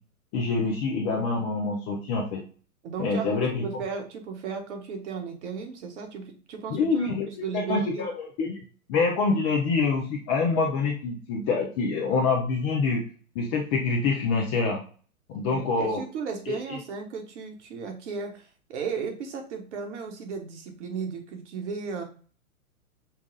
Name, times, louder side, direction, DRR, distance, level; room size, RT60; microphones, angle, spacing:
voice 1, 0.3-2.4 3.0-3.7 6.7-8.6 8.9-13.0 13.3-14.8 15.3-16.0 16.5-16.8, left 4 dB, 20° left, 1 dB, 0.4 m, -26 dB
voice 2, 2.8-7.1 7.4-8.1 15.5-22.0, right 5 dB, 50° right, 4 dB, 1.3 m, -35 dB
5.6 x 2.3 x 3.7 m, 0.41 s
hypercardioid pair, 115°, 43 cm